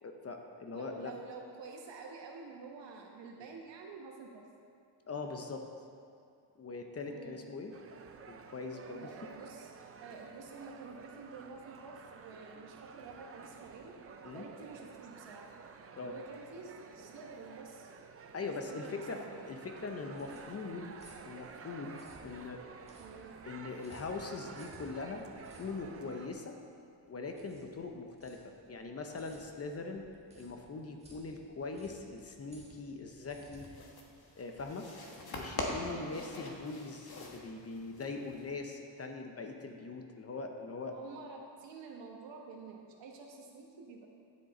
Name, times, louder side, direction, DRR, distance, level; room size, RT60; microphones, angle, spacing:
voice 1, 0.0-1.1 5.1-5.7 6.6-7.7 8.3-9.1 14.2-14.5 15.9-16.1 18.3-19.2 19.5-22.6 23.4-26.6 27.1-30.0 30.4-33.8 34.3-34.9 35.3-41.0, left 3 dB, 35° left, 4 dB, 0.7 m, -42 dB
voice 2, 0.7-4.4 7.1-7.4 8.9-9.7 10.0-14.0 14.3-15.5 16.0-17.9 18.6-19.6 23.0-23.3 35.8-36.3 40.9-44.1, right 4 dB, 75° right, 1 dB, 1.3 m, -49 dB
sound 1, 7.7-26.3, right 5 dB, 35° right, 0.4 m, -52 dB
sound 2, 19.8-34.9, right 1 dB, 15° right, 1.4 m, -60 dB
sound 3, 33.6-38.5, left 2 dB, 55° left, 1.3 m, -43 dB
10.5 x 6.4 x 4.3 m, 2.4 s
wide cardioid pair, 145°, 44 cm